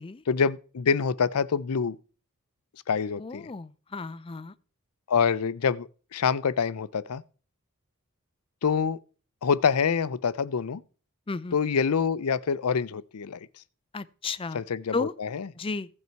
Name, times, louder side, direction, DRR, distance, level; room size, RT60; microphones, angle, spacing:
voice 1, 0.3-2.0 2.9-3.5 5.1-7.2 8.6-9.0 9.4-10.8 11.5-13.5 14.5-15.5, left 6 dB, 80° left, 0.5 m, -26 dB
voice 2, 3.2-4.5 11.3-11.5 13.9-14.6 14.9-15.1 15.6-15.9, left 4 dB, 25° left, 0.5 m, -33 dB
16.0 x 5.4 x 4.5 m
head